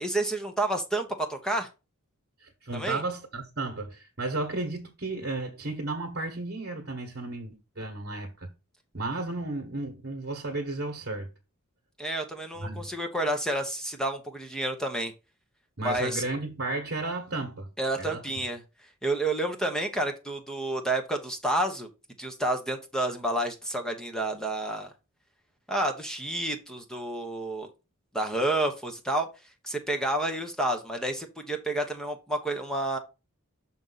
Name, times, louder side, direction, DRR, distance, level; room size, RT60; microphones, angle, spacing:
voice 1, 0.0-1.7 2.7-3.0 12.0-15.1 15.8-16.2 17.8-18.6 19.0-21.9 22.2-24.9 25.7-27.7 28.1-29.3 29.6-33.0, right 1 dB, 5° left, 1.0 m, -29 dB
voice 2, 2.4-8.5 8.9-11.3 12.6-12.9 15.8-17.7 18.0-18.2, right 2 dB, 50° right, 1.4 m, -33 dB
6.3 x 5.3 x 4.0 m
head